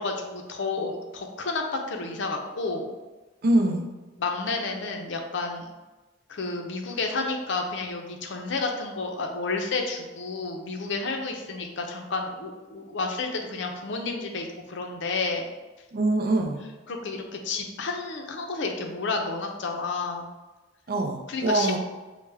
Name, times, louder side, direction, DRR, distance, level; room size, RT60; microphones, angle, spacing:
voice 1, 0.0-2.9 4.2-5.7 6.3-15.5 16.9-20.3 21.3-21.8, left 3 dB, 65° left, 3 dB, 0.5 m, -31 dB
voice 2, 3.4-3.9 15.9-16.6 20.9-21.8, right 2 dB, 50° right, 4 dB, 0.4 m, -23 dB
4.7 x 2.1 x 3.3 m, 1.2 s
head